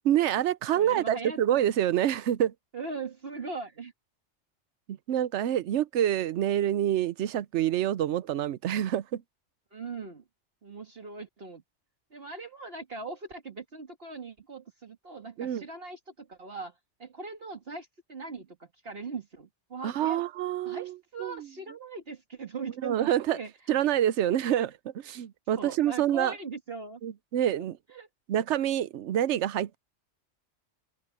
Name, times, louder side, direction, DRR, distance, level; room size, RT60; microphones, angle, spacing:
voice 1, 0.0-2.5 4.9-9.2 15.4-15.6 19.8-20.9 21.2-21.4 22.8-23.4 23.7-24.7 25.1-26.3 27.0-27.8 28.3-29.8, right 11 dB, 80° right, 0.9 m, -27 dB
voice 2, 0.7-1.7 2.7-3.9 9.7-10.2 10.6-11.6 12.1-20.2 20.7-23.8 24.5-24.7 25.6-27.0 27.9-28.1, right 4 dB, 55° right, 2.1 m, -40 dB
open air
omnidirectional pair, 1.2 m